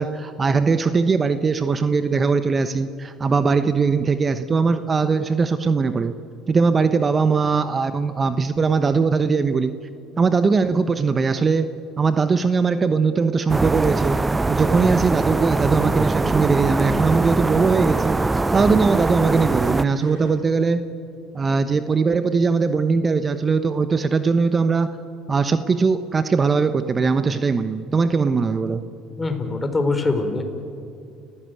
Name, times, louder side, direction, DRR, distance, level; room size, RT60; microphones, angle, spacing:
voice 1, 0.0-6.1 6.5-9.7 10.2-11.7 12.0-14.2 14.5-20.8 21.3-25.0 25.3-28.8, right 4 dB, 30° right, 11 dB, 1.0 m, -20 dB
sound 1, 13.5-19.8, right 2 dB, 15° right, 0.5 m, -22 dB
sound 2, 14.1-20.3, right 2 dB, 85° right, 8.0 m, -44 dB
voice 2, 29.2-30.4, left 3 dB, 20° left, 6 dB, 4.3 m, -23 dB
30.0 x 16.0 x 9.3 m, 2.4 s
supercardioid pair, 75°, 0 cm